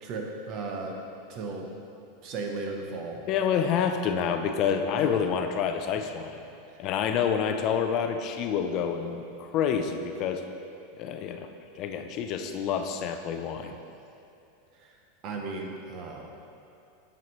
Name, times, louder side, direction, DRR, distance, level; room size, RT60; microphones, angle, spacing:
voice 1, 0.0-1.0 1.3-1.7 2.2-3.2 5.0-5.2 15.2-16.2, right 3 dB, 40° right, 1 dB, 0.8 m, -35 dB
voice 2, 3.3-6.4 6.8-10.4 11.0-11.5 11.8-13.8, left 7 dB, 40° left, 6 dB, 0.4 m, -28 dB
7.2 x 5.7 x 3.1 m, 2.7 s
supercardioid pair, 155°, 0 cm